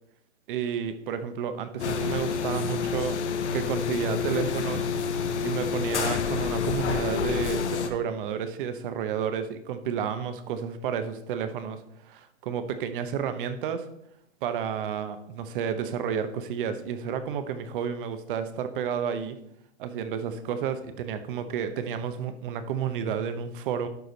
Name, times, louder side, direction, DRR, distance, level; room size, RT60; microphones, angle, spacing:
voice 1, 0.5-3.2 3.5-4.9 5.4-13.9 14.4-19.4 19.8-23.9, right 8 dB, 50° right, 11 dB, 1.0 m, -31 dB
sound 1, 1.8-7.9, left 6 dB, 75° left, 1.0 m, -28 dB
11.5 x 4.9 x 4.0 m, 0.77 s
hypercardioid pair, 130°, 35 cm